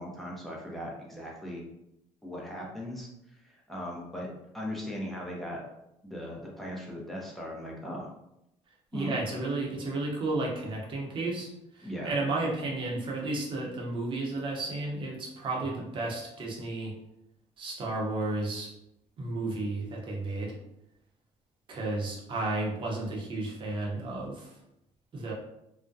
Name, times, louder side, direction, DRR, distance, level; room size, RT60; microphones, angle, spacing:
voice 1, 0.0-1.7 2.2-4.3 4.5-5.6 6.0-8.1 8.9-9.1 11.8-12.1, equal, ahead, -3 dB, 0.6 m, -38 dB
voice 2, 8.9-11.5 11.7-16.9 17.6-18.7 19.2-20.5 21.7-24.5 25.1-25.3, right 2 dB, 40° right, -2 dB, 0.7 m, -32 dB
2.3 x 2.1 x 2.6 m, 0.83 s
cardioid pair, 120°, 13 cm